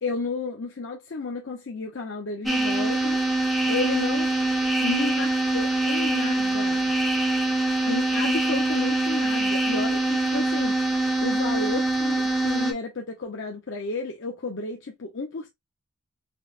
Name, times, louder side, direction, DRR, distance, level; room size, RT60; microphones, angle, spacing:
voice 1, 0.0-3.2 3.7-4.3 4.8-6.9 7.9-10.8 11.2-15.5, left 3 dB, 60° left, 0.6 m, -32 dB
sound 1, 2.5-12.7, right 2 dB, ahead, 0.4 m, -24 dB
5.1 x 2.0 x 2.4 m
head